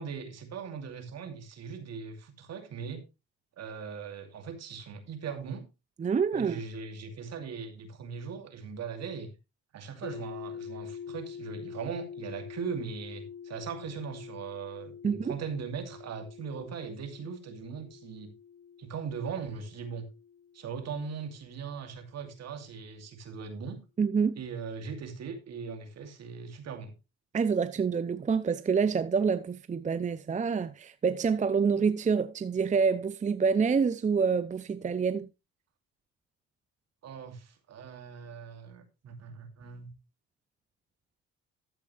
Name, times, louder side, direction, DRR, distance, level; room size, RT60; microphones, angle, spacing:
voice 1, 0.0-3.0 3.6-5.7 6.3-9.3 9.7-18.3 18.8-20.1 20.5-23.8 24.4-26.9 37.0-39.9, right 6 dB, 60° right, 2.5 m, -39 dB
voice 2, 6.0-6.6 15.0-15.4 24.0-24.4 27.3-35.3, right 5 dB, 25° right, 0.6 m, -27 dB
sound 1, 10.0-21.9, left 7 dB, 45° left, 1.9 m, -46 dB
12.5 x 7.4 x 3.2 m
cardioid pair, 80°, 29 cm